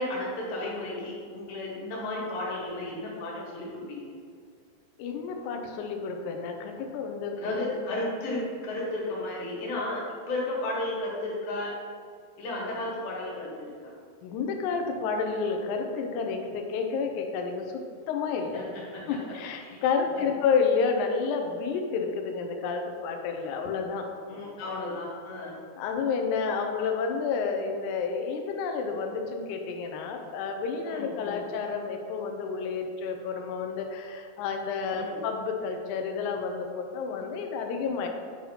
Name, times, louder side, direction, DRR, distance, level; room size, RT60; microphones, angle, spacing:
voice 1, 0.0-4.1 7.4-11.7 12.4-13.9 18.5-19.0 19.6-19.8 20.1-20.3 24.3-25.5 30.9-31.4 34.9-35.2, left 1 dB, 70° left, -5 dB, 3.1 m, -34 dB
voice 2, 5.0-7.8 14.2-18.6 19.1-24.1 25.8-38.1, left 5 dB, 90° left, 3 dB, 1.7 m, -30 dB
7.8 x 2.8 x 5.5 m, 2.1 s
omnidirectional pair, 4.3 m